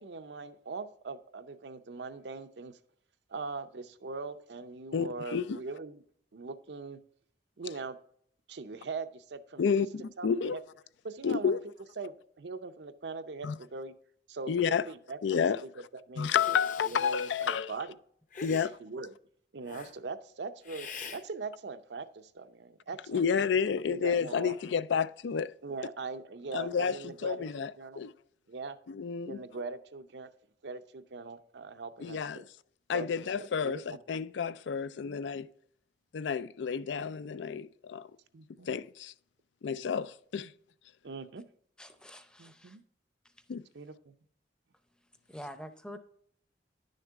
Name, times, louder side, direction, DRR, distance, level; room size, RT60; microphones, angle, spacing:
voice 1, 0.0-2.8 3.3-6.0 6.3-7.0 7.6-8.0 8.5-9.9 10.2-10.6 11.0-11.6 12.0-13.9 14.3-16.6 16.8-18.0 18.5-19.1 19.5-23.2 23.9-24.7 25.6-28.0 28.5-28.8 29.3-30.3 30.6-32.5 32.9-34.0 35.0-35.2 38.3-38.7 41.0-41.5 42.4-42.8 43.7-44.1, right 4 dB, 70° right, 0.6 m, -41 dB
voice 2, 4.9-5.6 9.6-10.6 11.2-11.6 13.4-13.5 14.5-14.8 15.2-15.6 16.2-17.7 18.4-18.7 23.1-25.5 26.5-27.0 27.2-27.7 28.0-28.1 28.9-29.4 32.0-32.4 32.9-35.5 36.1-38.1 38.7-39.1 39.6-40.5 43.5-43.6, left 6 dB, 80° left, 0.4 m, -30 dB
Hiss, 16.2-17.6 18.3-18.7 19.7-19.9 20.6-21.2, left 5 dB, 45° left, 0.8 m, -45 dB
voice 3, 41.8-42.8 45.3-46.0, equal, 5° left, 0.6 m, -46 dB
10.5 x 6.5 x 3.5 m
head